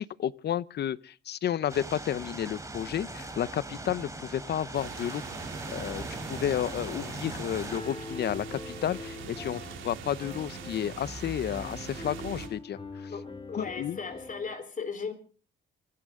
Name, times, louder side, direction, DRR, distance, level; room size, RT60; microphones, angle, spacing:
voice 1, 0.0-5.2 5.7-13.1 13.5-14.0, left 10 dB, 55° left, 0.8 m, -32 dB
sound 1, 1.7-7.8, right 2 dB, 15° right, 4.0 m, -40 dB
sound 2, 4.7-12.5, right 8 dB, 80° right, 4.0 m, -43 dB
Piano, 7.7-14.5, left 3 dB, 25° left, 2.6 m, -43 dB
voice 2, 13.1-15.1, left 5 dB, 40° left, 4.1 m, -37 dB
25.0 x 13.5 x 3.7 m
cardioid pair, 90°, 20 cm